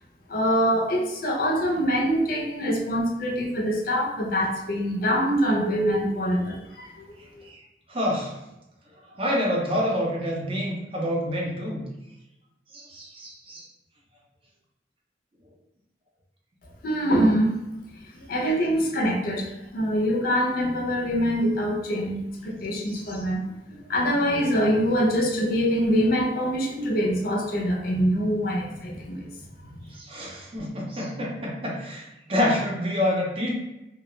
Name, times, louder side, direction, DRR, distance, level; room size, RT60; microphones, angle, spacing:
voice 1, 0.3-7.5 16.8-17.6 18.1-23.4 23.9-29.2, equal, 55° left, -1 dB, 0.5 m, -24 dB
voice 2, 7.9-8.3 9.1-11.8 12.7-13.7 22.9-23.0 30.0-33.5, left 1 dB, 30° right, -2 dB, 0.5 m, -27 dB
2.3 x 2.0 x 3.0 m, 0.94 s
head